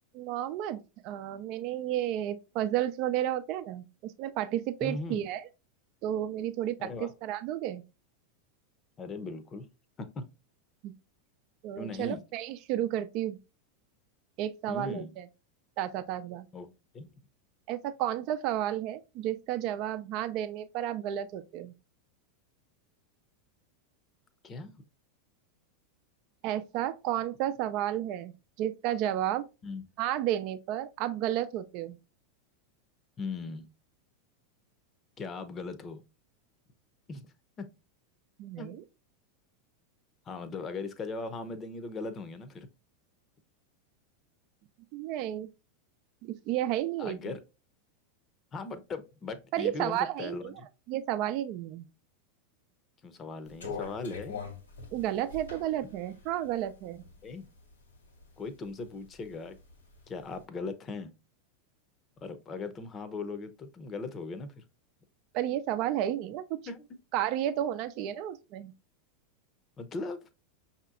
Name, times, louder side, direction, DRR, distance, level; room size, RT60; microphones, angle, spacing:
voice 1, 0.1-5.4 6.0-7.8 10.8-10.9 11.6-13.4 14.4-15.2 15.8-16.5 17.7-21.7 26.4-29.5 30.0-32.0 38.4-38.8 44.9-45.5 46.2-47.3 49.5-50.5 50.9-51.9 54.9-57.0 65.3-66.6 67.1-68.7, right 12 dB, 50° right, 0.5 m, -32 dB
voice 2, 4.8-5.3 6.8-7.1 9.0-9.7 10.0-10.3 11.8-12.3 14.7-15.1 16.5-17.1 24.4-24.9 29.6-29.9 33.2-33.7 35.2-36.0 37.1-37.7 38.6-38.7 40.2-42.7 47.0-47.4 48.5-50.7 53.0-54.4 57.2-57.5 58.4-59.6 60.1-61.1 62.2-64.6 66.7-66.9 69.8-70.3, left 3 dB, 30° left, 0.7 m, -39 dB
sound 1, 53.5-57.4 57.9-58.9 59.2-60.2, left 5 dB, 85° left, 1.5 m, -42 dB
5.6 x 2.8 x 2.4 m
hypercardioid pair, 95°, 0 cm